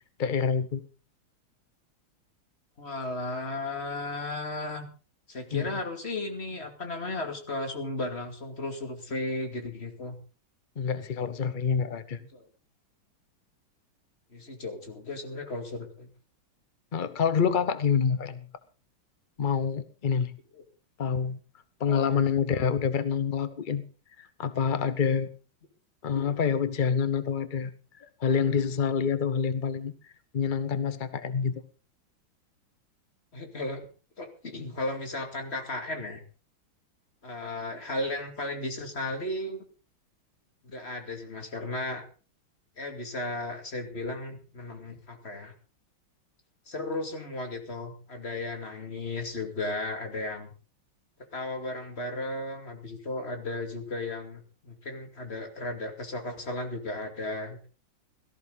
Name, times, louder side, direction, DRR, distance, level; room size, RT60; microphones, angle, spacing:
voice 1, 0.2-0.8 5.5-5.7 10.8-12.2 16.9-18.5 19.4-20.3 21.0-21.4 21.8-23.8 24.2-25.4 26.0-27.7 28.0-29.9 30.3-31.6, left 6 dB, 60° left, 0.5 m, -27 dB
voice 2, 2.8-4.8 5.3-10.2 12.2-12.5 14.3-16.1 20.5-20.6 21.9-22.2 33.3-33.9 34.2-36.2 37.2-39.6 40.6-42.1 42.8-45.5 46.7-50.5 51.3-57.7, left 2 dB, 30° left, 2.6 m, -35 dB
17.5 x 14.0 x 4.0 m
omnidirectional pair, 2.3 m